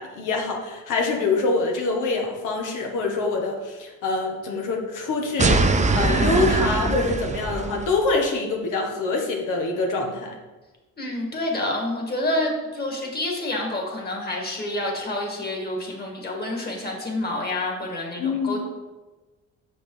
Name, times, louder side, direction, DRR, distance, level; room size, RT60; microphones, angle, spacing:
voice 1, 0.0-10.3 18.2-18.6, left 3 dB, 85° left, 1 dB, 1.6 m, -25 dB
sound 1, 5.4-8.0, right 3 dB, 25° right, 0.7 m, -22 dB
voice 2, 11.0-18.6, left 1 dB, 30° left, 0 dB, 2.2 m, -28 dB
7.0 x 5.3 x 5.0 m, 1.2 s
cardioid pair, 90°, 30 cm